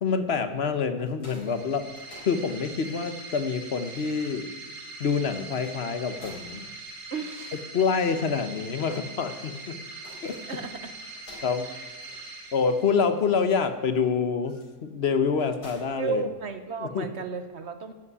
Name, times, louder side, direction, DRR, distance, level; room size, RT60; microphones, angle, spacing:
voice 1, 0.0-1.9 2.2-4.5 5.0-6.7 7.7-9.8 10.2-10.4 11.4-11.7 12.5-16.3 16.8-17.1, left 5 dB, 45° left, 10 dB, 1.0 m, -26 dB
sound 1, 1.0-16.9, left 1 dB, 70° left, 4.6 m, -55 dB
sound 2, 1.3-13.3, right 2 dB, 70° right, 2.9 m, -42 dB
voice 2, 7.1-7.6 10.5-10.9 16.0-17.9, right 5 dB, 50° right, 9 dB, 1.0 m, -33 dB
11.0 x 8.3 x 9.7 m, 1.3 s
omnidirectional pair, 1.7 m